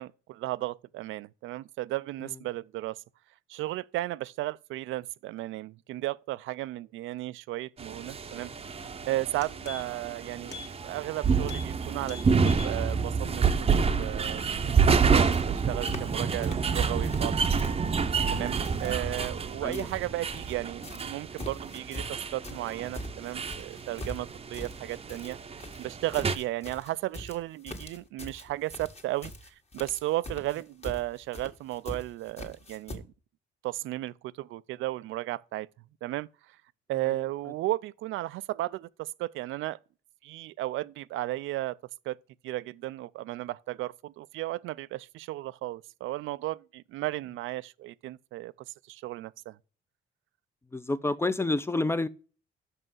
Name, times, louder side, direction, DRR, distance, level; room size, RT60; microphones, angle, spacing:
voice 1, 0.0-3.0 3.5-8.5 9.1-10.6 10.8-12.2 12.4-13.5 13.7-17.4 18.3-25.4 25.8-29.3 29.7-33.1 33.6-35.7 36.0-36.6 36.9-39.8 40.2-41.8 42.1-42.2 42.4-48.5 48.9-49.6, right 16 dB, 85° right, 0.4 m, -34 dB
sound 1, 7.8-26.4, right 5 dB, 30° right, 0.7 m, -28 dB
sound 2, 8.8-8.9 9.2-10.1 10.5-10.7 11.0-11.1 11.4-11.7 12.0-12.7 13.1-13.2, left 6 dB, 60° left, 1.8 m, -43 dB
sound 3, 15.0-15.1 15.3-16.2 16.4-17.3 17.6-20.5 20.8-33.0, left 1 dB, 30° left, 1.7 m, -43 dB
voice 2, 50.7-52.1, left 2 dB, 10° left, 0.5 m, -29 dB
6.1 x 5.5 x 5.3 m
cardioid pair, 90°, 20 cm